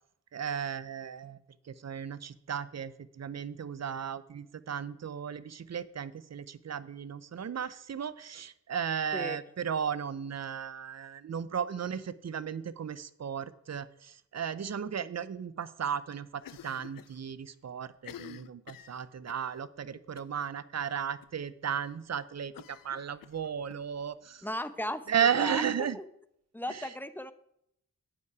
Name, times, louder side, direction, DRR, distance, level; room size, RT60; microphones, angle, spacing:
voice 1, 0.3-1.4 1.7-24.4 25.1-26.0, right 8 dB, 50° right, 16 dB, 0.7 m, -35 dB
Cough, 16.4-17.2 17.5-17.6 17.9-19.5 20.2-20.5 20.8-20.9 21.2-21.3 22.5-23.8, left 11 dB, 75° left, 0.5 m, -49 dB
voice 2, 24.4-25.0 25.4-26.1 26.5-27.3, left 1 dB, 5° left, 12 dB, 0.8 m, -36 dB
9.8 x 8.6 x 4.7 m, 0.75 s
cardioid pair, 60°, 34 cm